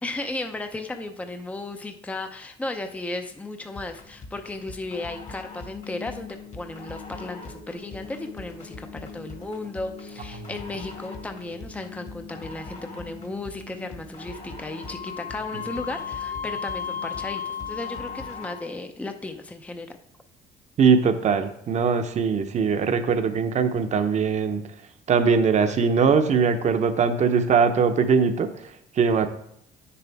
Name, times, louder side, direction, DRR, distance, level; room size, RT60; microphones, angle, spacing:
voice 1, 0.0-8.9 9.1-17.4 17.7-20.0, left 2 dB, 10° left, 6 dB, 0.6 m, -35 dB
finger song, 3.8-18.7, left 3 dB, 45° left, 1.7 m, -42 dB
Wind instrument woodwind instrument, 14.8-18.8, left 8 dB, 65° left, 1.7 m, -34 dB
voice 2, 20.8-24.6 25.1-28.5 29.0-29.3, right 5 dB, 45° right, 7 dB, 0.9 m, -21 dB
9.1 x 6.9 x 3.5 m, 0.75 s
cardioid pair, 110°, 17 cm